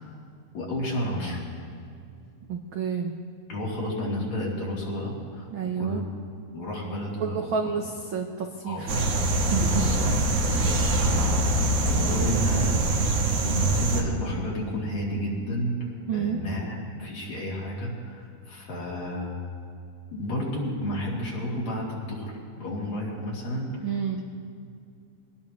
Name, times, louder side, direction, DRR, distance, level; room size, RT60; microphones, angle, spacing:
voice 1, 0.5-1.4 3.5-6.1 6.5-7.4 8.6-8.9 9.6-10.1 10.4-11.4 11.8-12.8 13.4-15.8 16.1-19.3 20.1-23.8, left 1 dB, 65° left, -5 dB, 4.4 m, -31 dB
voice 2, 2.5-3.1 5.5-6.0 7.2-9.0 9.5-9.8 11.0-11.3 16.1-16.4 23.8-24.2, right 7 dB, 80° right, 3 dB, 1.1 m, -30 dB
sound 1, 8.9-14.0, right 2 dB, 60° right, 2.2 m, -23 dB
24.0 x 18.5 x 3.2 m, 2.4 s
omnidirectional pair, 3.5 m